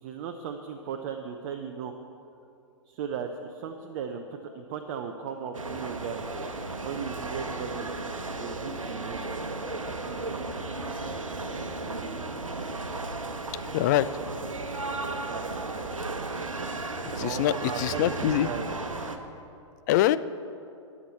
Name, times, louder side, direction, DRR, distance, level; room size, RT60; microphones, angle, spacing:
voice 1, 0.0-1.9 2.9-6.2 6.8-7.9 8.4-9.3 15.2-15.5 17.2-18.8, right 7 dB, 40° right, 5 dB, 0.7 m, -36 dB
sound 1, 5.5-19.2, right 3 dB, 80° right, 1.0 m, -34 dB
voice 2, 13.7-14.1 17.0-18.5 19.9-20.2, left 14 dB, 35° left, 15 dB, 0.3 m, -24 dB
18.5 x 7.3 x 4.2 m, 2.6 s
figure-of-eight pair, 110°, 17 cm